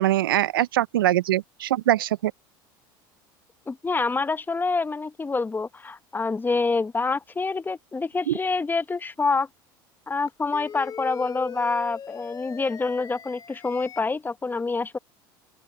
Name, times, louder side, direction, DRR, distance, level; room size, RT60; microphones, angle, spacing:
voice 1, 0.0-2.3 8.3-8.4, right 14 dB, 90° right, 0.5 m, -22 dB
voice 2, 3.7-9.5 10.1-15.0, left 4 dB, 15° left, 1.0 m, -26 dB
sound 1, 10.3-14.0, left 7 dB, 35° left, 2.9 m, -39 dB
open air
hypercardioid pair, 85°, 11 cm